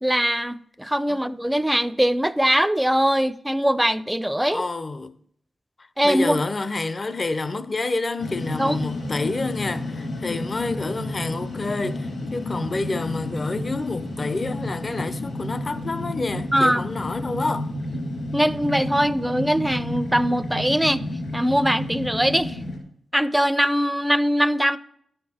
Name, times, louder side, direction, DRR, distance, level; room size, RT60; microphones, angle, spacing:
voice 1, 0.0-4.6 6.0-6.4 8.6-8.8 16.5-16.8 18.3-21.0 21.3-22.6 23.1-24.8, equal, 5° right, 0.4 m, -21 dB
voice 2, 4.5-5.1 6.0-17.7, left 3 dB, 45° left, 0.6 m, -28 dB
sound 1, 8.2-22.8, left 1 dB, 70° left, 2.9 m, -31 dB
10.5 x 6.6 x 4.2 m
cardioid pair, 50°, 0 cm